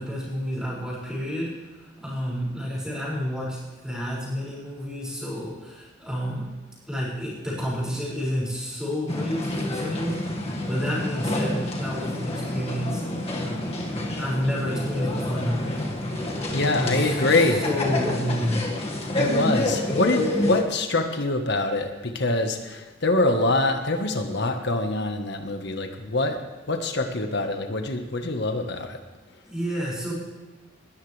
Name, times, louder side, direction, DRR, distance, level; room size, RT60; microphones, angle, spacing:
voice 1, 0.0-1.5 2.0-3.6 3.8-6.5 6.9-13.0 13.4-13.7 14.2-15.8 16.6-18.7 29.4-30.1, equal, 5° right, -7 dB, 6.1 m, -30 dB
sound 1, 9.1-20.6, left 1 dB, 30° left, 1.9 m, -28 dB
voice 2, 16.5-17.7 19.1-26.4 26.7-29.0, left 2 dB, 60° left, 5 dB, 1.4 m, -24 dB
20.0 x 13.5 x 3.4 m, 1.3 s
head